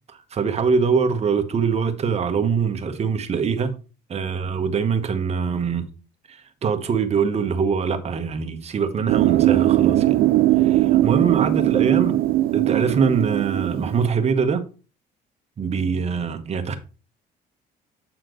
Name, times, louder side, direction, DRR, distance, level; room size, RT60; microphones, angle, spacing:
voice 1, 0.3-3.7 4.1-5.9 6.3-10.2 10.6-12.2 12.5-14.6 15.6-16.8, right 5 dB, 40° right, 1.2 m, -23 dB
sound 1, 9.1-14.1, right 15 dB, 65° right, 0.4 m, -19 dB
7.9 x 4.4 x 3.9 m
cardioid pair, 110°, 17 cm